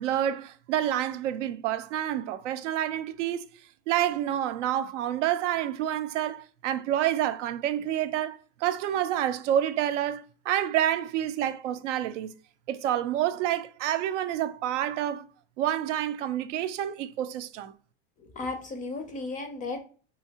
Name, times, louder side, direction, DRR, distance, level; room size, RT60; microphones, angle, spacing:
voice 1, 0.0-3.5 3.9-12.3 12.7-15.2 15.6-17.7, right 11 dB, 85° right, 0.5 m, -28 dB
voice 2, 18.2-19.8, left 3 dB, 25° left, 0.4 m, -35 dB
2.9 x 2.8 x 2.7 m
supercardioid pair, 120°, 35 cm